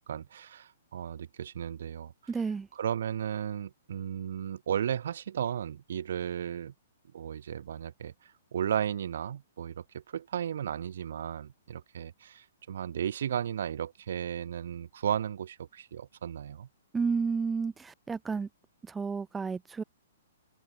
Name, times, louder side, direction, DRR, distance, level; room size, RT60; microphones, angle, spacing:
voice 1, 0.0-2.1 2.7-6.7 7.1-16.7, right 9 dB, 65° right, 1.4 m, -35 dB
voice 2, 2.3-2.7 16.9-18.5 18.8-19.8, right 5 dB, 10° right, 0.4 m, -31 dB
open air
hypercardioid pair, 120°, 0 cm